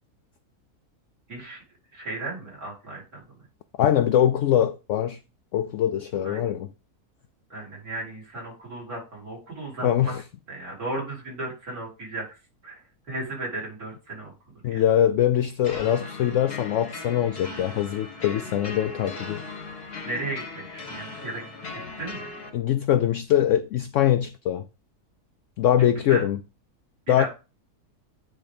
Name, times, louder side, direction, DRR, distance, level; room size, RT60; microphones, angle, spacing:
voice 1, 1.9-3.0 6.2-6.4 7.5-10.1 10.5-12.3 12.6-12.8 13.1-14.3 14.7-14.8 20.0-21.4 22.0-22.3 26.1-26.2 27.2-27.3, right 2 dB, 70° right, 4.9 m, -35 dB
voice 2, 3.8-5.2 5.5-6.7 9.8-10.2 14.6-19.4 22.5-24.7 25.6-26.4 27.1-27.3, left 11 dB, 70° left, 0.8 m, -22 dB
sound 1, 15.6-22.5, left 3 dB, 90° left, 2.3 m, -38 dB
9.5 x 3.7 x 5.1 m
omnidirectional pair, 1.6 m